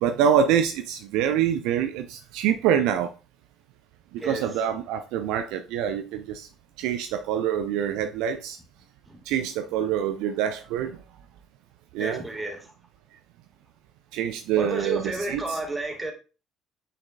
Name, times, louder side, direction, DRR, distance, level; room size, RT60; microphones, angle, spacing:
voice 1, 0.0-3.1 4.1-6.5 6.8-8.6 9.3-11.0 11.9-12.2 14.1-15.6, right 9 dB, 60° right, 0.5 m, -25 dB
voice 2, 4.2-4.5 9.1-9.2 11.9-12.7 14.6-16.1, right 2 dB, 15° right, 2.1 m, -32 dB
8.9 x 4.3 x 2.5 m
figure-of-eight pair, 50°, 0 cm